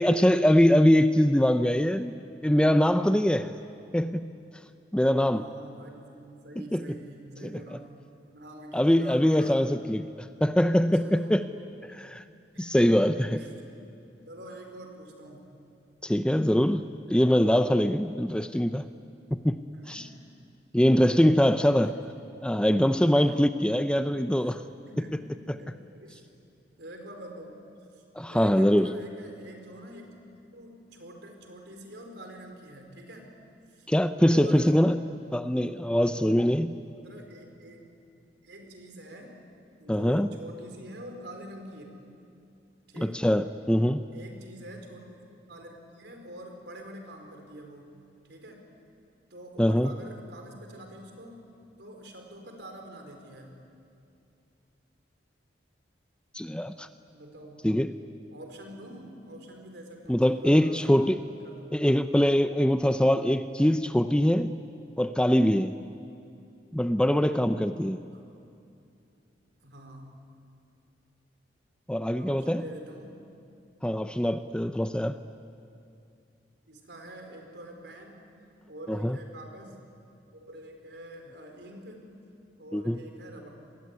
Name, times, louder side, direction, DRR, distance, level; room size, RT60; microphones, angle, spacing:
voice 1, 0.0-2.1 2.4-3.5 3.9-4.3 4.9-5.5 6.7-6.8 7.4-7.5 8.7-10.1 10.4-11.4 11.9-12.2 12.6-13.3 16.0-18.9 19.3-19.6 19.9-20.1 20.7-22.0 22.4-24.6 28.2-28.9 33.9-35.0 35.3-36.8 39.9-40.3 43.0-44.0 49.6-49.9 56.3-56.9 57.6-57.9 60.1-61.2 61.7-64.6 65.0-65.7 66.7-68.0 71.9-72.6 73.8-75.2 78.9-79.2 82.7-83.0, equal, 5° left, 10 dB, 0.6 m, -23 dB
voice 2, 5.3-9.6 10.9-11.5 12.5-13.5 14.2-15.5 17.6-17.8 19.7-20.1 21.8-22.0 23.1-23.5 24.4-24.5 24.9-25.1 25.5-26.3 26.8-27.6 27.9-33.3 33.7-33.9 34.3-34.9 35.9-36.1 37.0-37.8 38.4-39.4 39.8-41.9 42.9-43.3 44.1-47.9 48.2-48.6 49.3-51.4 51.8-53.5 57.1-57.7 58.3-61.0 61.4-61.9 68.1-68.2 69.6-70.2 72.1-73.2 76.7-78.2 78.6-79.9 80.3-82.1 82.6-83.5, right 1 dB, 65° right, 3 dB, 4.6 m, -46 dB
26.5 x 21.0 x 9.7 m, 2.6 s
head